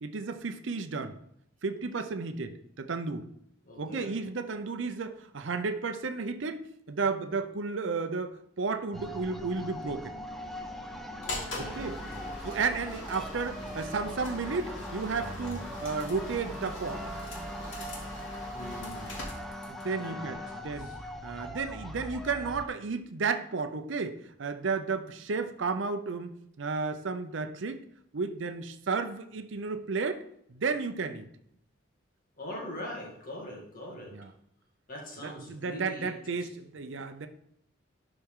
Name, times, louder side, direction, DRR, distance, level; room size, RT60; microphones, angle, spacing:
voice 1, 0.0-1.2 1.6-3.3 3.8-10.1 11.6-12.0 12.4-17.0 19.7-20.9 21.2-26.3 26.6-27.8 28.1-30.2 30.5-31.3 34.1-34.3 35.2-37.3, right 4 dB, 70° right, 8 dB, 0.6 m, -33 dB
voice 2, 3.6-4.1 11.2-12.4 18.5-19.2 19.9-21.0 32.4-34.1 34.9-36.5, left 1 dB, 45° left, -2 dB, 2.1 m, -43 dB
sound 1, 8.9-22.7, equal, ahead, 0.6 m, -41 dB
sound 2, 11.2-19.9, left 1 dB, 75° left, 2.6 m, -42 dB
11.5 x 4.5 x 3.7 m, 0.73 s
head